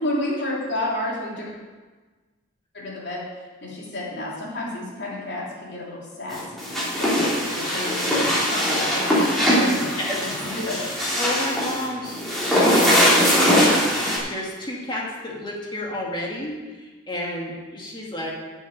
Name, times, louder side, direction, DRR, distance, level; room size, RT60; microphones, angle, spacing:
voice 1, 0.0-1.5 2.7-3.2 3.6-6.7 7.0-9.9 10.2-10.9, left 1 dB, 55° left, -4 dB, 3.3 m, -30 dB
sound 1, 6.3-14.2, equal, ahead, 3.2 m, -21 dB
voice 2, 9.1-10.2 10.7-13.0 13.9-18.3, left 1 dB, 25° left, -3 dB, 2.1 m, -32 dB
8.3 x 7.7 x 8.6 m, 1.3 s
head